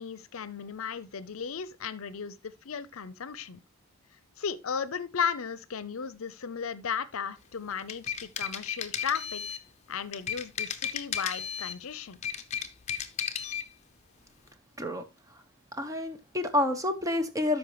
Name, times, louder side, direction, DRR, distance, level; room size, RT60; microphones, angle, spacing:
voice 1, 0.0-3.6 4.4-9.4 9.9-12.2, left 7 dB, 75° left, 0.6 m, -35 dB
sound 1, 7.7-9.7 10.1-11.8 12.1-13.7, left 8 dB, 30° left, 0.7 m, -34 dB
voice 2, 15.8-17.6, left 1 dB, 15° right, 1.0 m, -28 dB
13.0 x 5.3 x 3.0 m
head